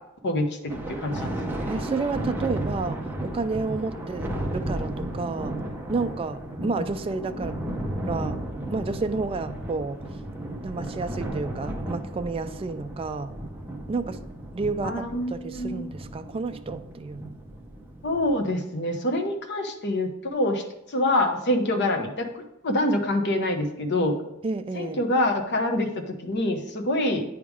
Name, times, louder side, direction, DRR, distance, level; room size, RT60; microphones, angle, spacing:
voice 1, 0.2-1.7 14.8-15.9 18.0-20.6 20.9-24.2 24.7-27.2, left 1 dB, 55° left, 4 dB, 1.0 m, -26 dB
Thunder, 0.7-18.4, right 1 dB, 10° right, 0.7 m, -34 dB
voice 2, 1.7-5.6 5.9-7.6 8.1-8.4 8.7-10.0 10.5-13.3 13.9-14.2 14.5-17.2 24.4-25.0, right 3 dB, 25° right, 8 dB, 0.3 m, -31 dB
9.4 x 3.6 x 4.8 m, 0.84 s
head